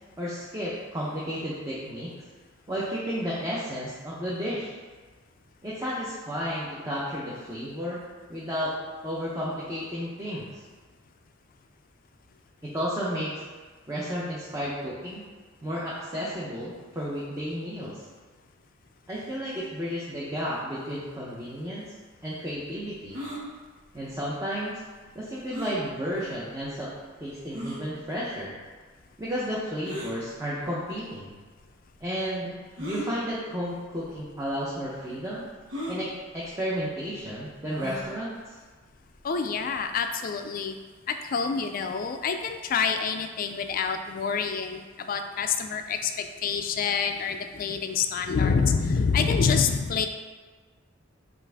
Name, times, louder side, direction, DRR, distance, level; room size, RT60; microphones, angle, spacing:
voice 1, 0.2-2.1 2.7-4.7 5.6-8.0 8.3-8.7 9.0-10.6 12.6-13.4 13.9-15.2 15.6-18.0 19.1-21.9 22.2-23.2 23.9-24.8 25.1-26.9 27.2-28.5 29.2-31.3 32.0-32.5 32.8-35.5 35.9-38.5, equal, 15° right, -7 dB, 0.6 m, -32 dB
sound 1, 23.1-23.4 25.5-25.8 26.6-26.7 27.5-27.8 29.8-30.1 31.2-31.3 32.7-33.1 34.0-34.1 34.4-34.5 35.7-36.0 37.7-38.1, equal, 85° right, 1.0 m, -35 dB
voice 2, 39.2-40.8 41.1-50.1, left 5 dB, 45° left, 7 dB, 0.3 m, -27 dB
5.6 x 2.5 x 3.4 m, 1.4 s
head